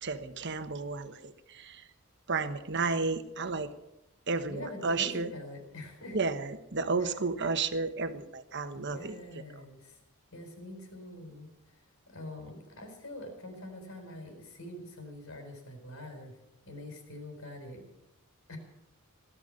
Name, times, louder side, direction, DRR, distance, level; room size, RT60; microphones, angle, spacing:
voice 1, 0.0-1.9 2.3-3.7 4.3-5.3 6.1-9.2, right 4 dB, 55° right, 10 dB, 1.2 m, -32 dB
voice 2, 4.5-6.2 7.0-7.1 8.7-10.0 10.3-11.5 12.1-16.4 16.6-17.9 18.5-18.6, left 1 dB, 70° left, 4 dB, 4.7 m, -44 dB
17.0 x 12.5 x 6.6 m, 0.91 s
head